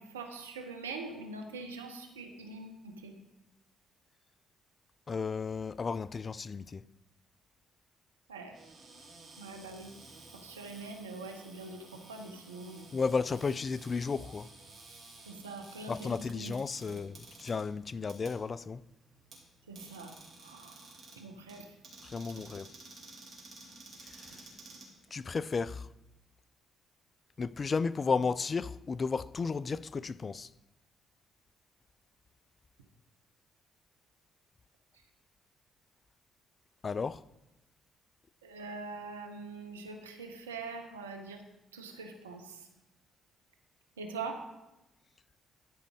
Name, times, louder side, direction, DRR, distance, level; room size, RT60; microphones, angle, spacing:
voice 1, 0.0-3.1 8.3-8.5 9.4-9.9 10.4-12.9 15.3-16.5 19.7-20.1 20.4-20.7 21.2-21.6 38.4-41.4 41.7-42.4 44.0-44.4, right 3 dB, 90° right, 0.9 m, -43 dB
voice 2, 5.1-6.8 12.9-14.5 15.9-18.8 22.0-22.7 24.0-24.5 25.1-25.9 27.4-30.5 36.8-37.2, left 5 dB, 40° left, 0.3 m, -33 dB
Cupboard open or close, 8.5-25.5, right 3 dB, 55° right, 3.1 m, -53 dB
12.5 x 5.2 x 4.8 m
hypercardioid pair, 45°, 0 cm